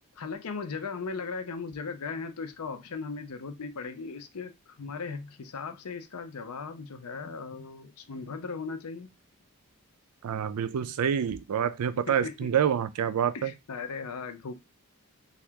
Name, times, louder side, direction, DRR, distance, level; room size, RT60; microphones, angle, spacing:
voice 1, 0.2-9.1 12.2-12.5 13.3-14.5, left 4 dB, 80° left, 0.5 m, -37 dB
voice 2, 10.2-13.5, right 8 dB, 90° right, 0.4 m, -27 dB
2.8 x 2.3 x 3.4 m
head